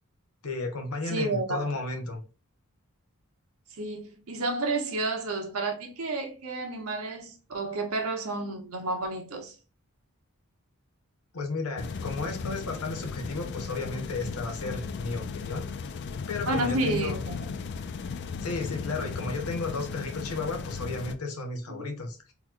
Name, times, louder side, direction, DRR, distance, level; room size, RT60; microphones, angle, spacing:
voice 1, 0.4-2.2 11.3-15.7 16.3-17.2 18.4-22.2, left 3 dB, 85° left, 0.9 m, -33 dB
voice 2, 1.1-1.7 3.8-9.5 16.5-17.4 21.8-21.9, right 2 dB, 80° right, 0.9 m, -31 dB
sound 1, 11.8-21.2, left 5 dB, 50° left, 0.3 m, -36 dB
4.0 x 2.9 x 2.4 m
head